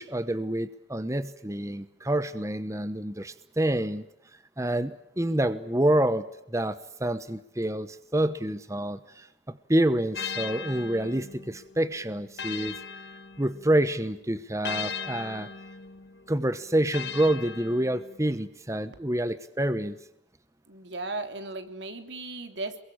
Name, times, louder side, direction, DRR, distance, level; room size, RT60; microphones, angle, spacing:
voice 1, 0.0-4.0 4.6-12.8 13.4-15.5 16.3-20.0, right 1 dB, 15° right, 13 dB, 1.0 m, -27 dB
sound 1, 10.1-13.9 14.6-18.3, left 7 dB, 70° left, 1.7 m, -38 dB
voice 2, 20.7-22.8, right 2 dB, 80° right, 7 dB, 3.5 m, -36 dB
28.5 x 22.5 x 8.7 m, 0.78 s
head